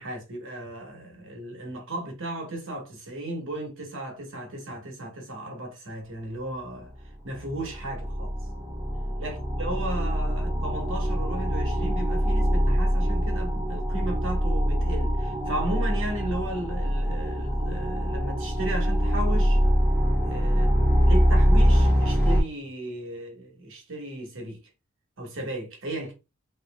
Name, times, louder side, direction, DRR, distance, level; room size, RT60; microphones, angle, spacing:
voice 1, 0.0-6.9 7.2-8.3 9.2-19.6 20.3-20.7 21.1-24.6 25.2-26.1, right 1 dB, 60° right, 1.3 m, -35 dB
sound 1, 7.0-7.1 7.3-22.4, equal, 5° right, 1.5 m, -24 dB
3.1 x 3.1 x 3.5 m
head